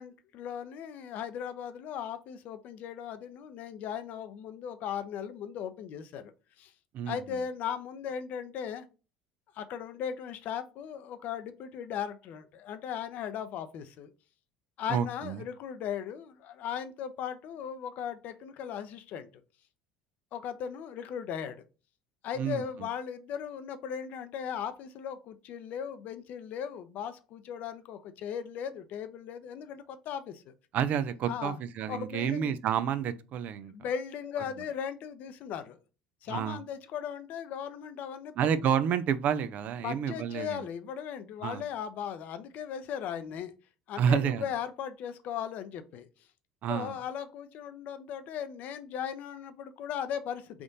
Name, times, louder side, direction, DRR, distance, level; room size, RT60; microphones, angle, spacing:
voice 1, 0.0-6.7 7.1-8.9 9.5-14.1 14.8-19.3 20.3-21.6 22.2-30.5 31.2-31.6 31.9-32.5 33.7-35.8 36.2-38.3 39.8-43.5 43.9-46.1 46.7-50.6, left 8 dB, 60° left, 0.6 m, -37 dB
voice 2, 14.9-15.4 22.4-22.6 30.7-33.7 36.3-36.6 38.4-40.6 41.4-41.6 44.0-44.4 46.6-46.9, right 8 dB, 55° right, 0.4 m, -29 dB
3.5 x 2.5 x 4.0 m
hypercardioid pair, 75°, 3 cm